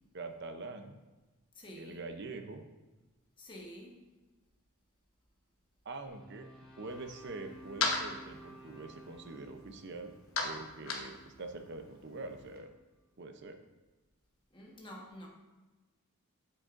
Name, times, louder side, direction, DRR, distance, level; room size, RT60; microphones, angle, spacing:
voice 1, 0.1-1.0 1.8-2.6 5.8-10.1 10.4-12.7 13.2-13.6, right 3 dB, 50° right, 0.7 m, -44 dB
voice 2, 1.5-2.1 3.4-4.1 14.5-15.3, equal, 20° left, 1.3 m, -49 dB
sound 1, 6.1-12.3, right 1 dB, 5° left, 1.5 m, -55 dB
sound 2, 6.9-12.6, left 3 dB, 65° left, 1.1 m, -40 dB
8.5 x 7.6 x 2.6 m
head